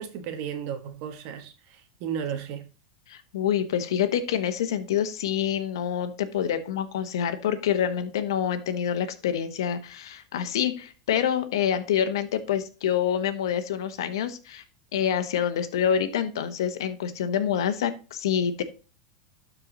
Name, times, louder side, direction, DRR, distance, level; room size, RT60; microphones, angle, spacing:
voice 1, 0.0-2.7, right 8 dB, 55° right, 1.4 m, -34 dB
voice 2, 3.1-14.6 14.9-18.6, left 9 dB, 80° left, 1.2 m, -27 dB
12.0 x 4.6 x 4.0 m
supercardioid pair, 130°, 2 cm